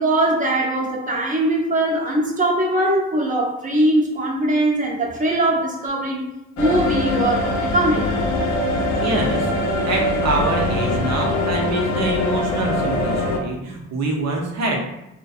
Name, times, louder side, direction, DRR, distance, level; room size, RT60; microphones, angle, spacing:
voice 1, 0.0-6.3 6.6-8.1, right 1 dB, 25° right, 0 dB, 0.6 m, -21 dB
sound 1, 6.6-13.4, left 1 dB, 65° left, 0.5 m, -22 dB
voice 2, 8.9-9.5 9.8-14.8, right 2 dB, 60° right, 0 dB, 0.7 m, -25 dB
2.5 x 2.2 x 2.4 m, 0.88 s
cardioid pair, 90°, 30 cm